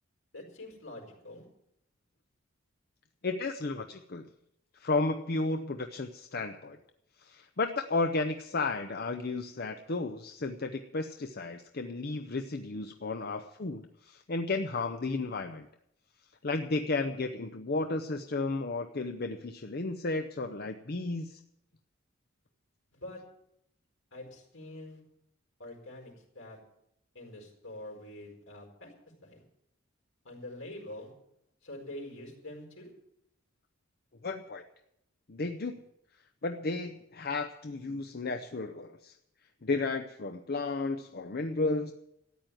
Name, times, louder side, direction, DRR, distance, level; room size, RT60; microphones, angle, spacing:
voice 1, 0.3-1.4 22.9-23.2 24.1-25.0 25.6-26.6 27.1-28.9 29.2-29.4 30.2-31.1 31.6-32.9, left 1 dB, 75° left, 0 dB, 4.7 m, -45 dB
voice 2, 3.2-4.3 4.8-6.8 7.2-15.7 16.4-21.4 34.2-34.6 35.3-35.8 36.4-39.1 39.6-41.9, left 3 dB, 50° left, 7 dB, 0.7 m, -33 dB
13.5 x 9.4 x 9.1 m, 0.79 s
head